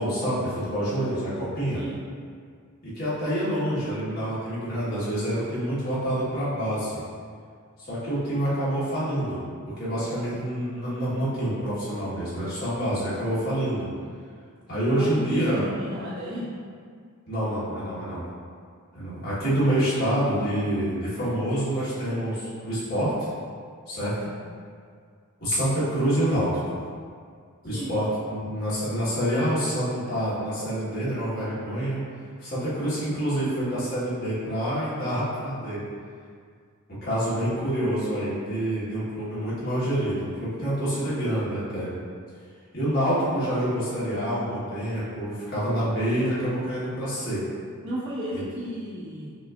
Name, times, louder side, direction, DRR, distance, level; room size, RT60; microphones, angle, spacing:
voice 1, 0.0-1.8 2.8-7.0 7.9-9.4 9.8-13.9 14.7-15.6 17.3-18.3 18.9-23.3 23.9-24.3 25.4-26.8 27.6-32.0 32.4-35.8 37.0-41.9 42.7-47.4, right 1 dB, 45° left, -10 dB, 1.3 m, -27 dB
voice 2, 15.0-16.5 27.6-27.9 47.8-49.4, equal, 55° right, -8 dB, 1.0 m, -33 dB
5.6 x 2.5 x 2.4 m, 2.1 s
head